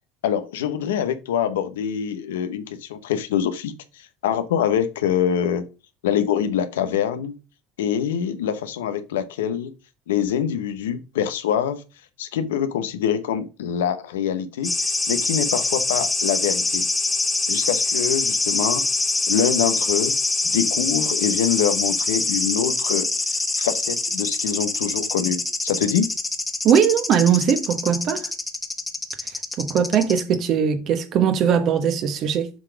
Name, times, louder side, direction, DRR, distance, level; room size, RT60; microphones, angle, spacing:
voice 1, 0.2-3.7 4.2-5.6 6.0-7.4 7.8-9.7 10.1-11.8 12.2-16.8 17.5-18.8 19.3-20.1 20.5-23.0 23.6-26.1, left 9 dB, 90° left, 0.9 m, -24 dB
sound 1, 14.6-30.2, left 3 dB, 15° left, 1.3 m, -24 dB
voice 2, 26.6-28.3 29.6-32.5, right 8 dB, 55° right, 1.2 m, -20 dB
7.3 x 3.9 x 5.0 m
hypercardioid pair, 85°, 0 cm